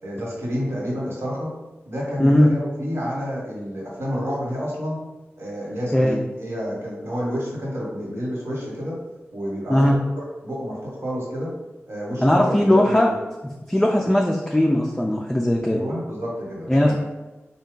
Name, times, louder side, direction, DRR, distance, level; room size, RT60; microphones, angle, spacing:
voice 1, 0.0-1.5 1.8-5.0 5.4-9.0 9.3-9.9 10.1-11.5 11.9-13.1 15.6-16.9, equal, 70° right, -5 dB, 1.3 m, -29 dB
voice 2, 12.2-13.1 13.7-15.8 16.7-16.9, left 1 dB, 10° left, 0 dB, 0.3 m, -18 dB
4.1 x 2.2 x 3.7 m, 1.1 s
wide cardioid pair, 105°, 5 cm